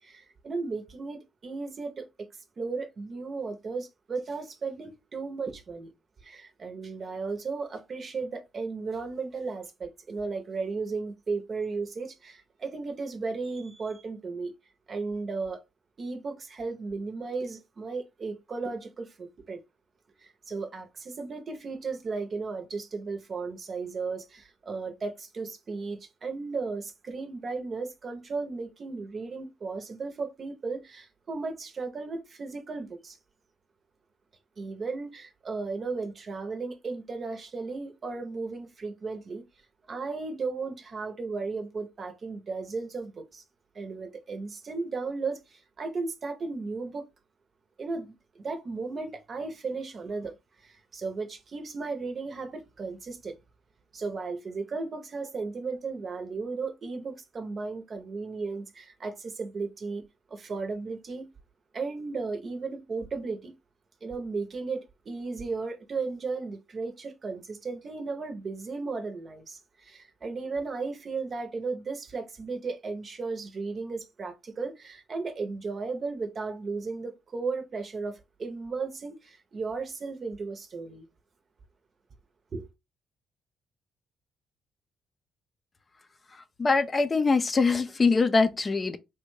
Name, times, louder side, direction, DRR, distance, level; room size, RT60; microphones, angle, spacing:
voice 1, 0.0-2.3 2.6-5.9 6.2-14.5 14.9-15.6 16.0-19.6 20.2-33.2 34.6-39.4 39.9-43.4 43.7-47.1 47.8-53.4 53.9-60.0 60.3-61.3 61.7-63.5 64.0-81.1 82.5-82.7, right 4 dB, 45° right, 0.8 m, -35 dB
voice 2, 86.3-89.0, left 4 dB, 30° left, 0.4 m, -23 dB
3.3 x 2.2 x 3.1 m
cardioid pair, 90°, 0 cm